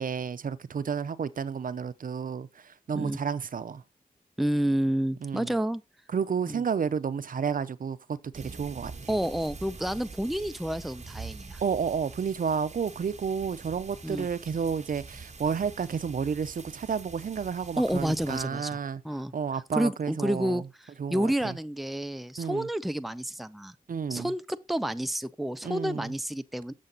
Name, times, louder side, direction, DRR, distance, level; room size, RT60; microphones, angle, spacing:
voice 1, 0.0-3.8 5.2-5.5 6.1-9.1 11.6-19.0 19.3-20.6 21.0-21.5 22.4-22.7 23.9-24.3 25.6-26.1, right 6 dB, 70° right, 0.6 m, -31 dB
voice 2, 4.4-5.8 6.5-6.6 9.1-11.6 14.0-14.3 17.8-18.8 19.0-19.3 19.7-23.7 24.1-26.7, right 1 dB, ahead, 0.5 m, -30 dB
sound 1, 8.3-18.4, right 4 dB, 50° right, 1.3 m, -45 dB
7.5 x 6.7 x 3.8 m
wide cardioid pair, 75°, 15 cm